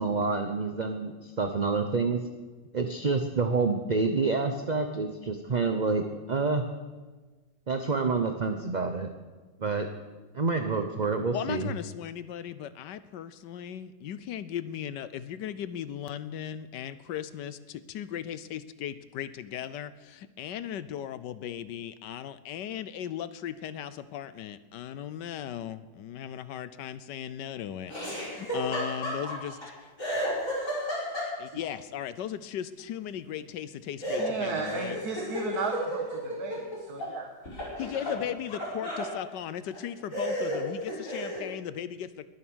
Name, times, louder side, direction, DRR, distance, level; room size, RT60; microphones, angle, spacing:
voice 1, 0.0-2.2 2.7-6.0 6.3-6.6 7.7-9.1 9.6-9.9 10.3-11.7, right 4 dB, 35° right, 6 dB, 0.7 m, -28 dB
voice 2, 11.3-29.5 31.4-35.0 37.8-42.3, left 10 dB, 75° left, 14 dB, 1.3 m, -37 dB
Laughter, 27.9-29.7 30.0-31.6 34.0-37.1 37.5-39.1 39.7-39.8 40.1-41.5, equal, 45° left, 5.3 m, -33 dB
voice 3, 34.2-37.4 37.7-37.8, right 5 dB, 60° right, 3 dB, 1.7 m, -35 dB
21.0 x 9.5 x 6.3 m, 1.3 s
omnidirectional pair, 1.9 m